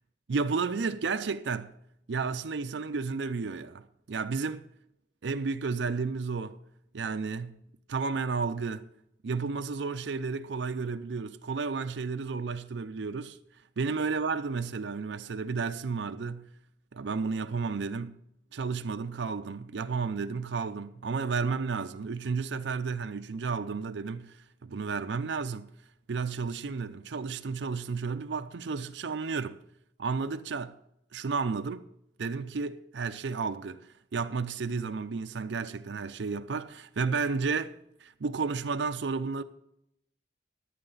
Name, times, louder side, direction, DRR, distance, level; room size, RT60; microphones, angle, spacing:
voice 1, 0.3-1.7 2.1-4.7 5.2-6.6 6.9-7.6 7.9-8.9 9.2-13.4 13.8-16.5 16.9-18.2 18.5-25.7 26.1-29.6 30.0-30.8 31.1-31.8 32.2-39.4, right 4 dB, 80° right, 0.5 m, -32 dB
14.5 x 10.5 x 3.9 m
head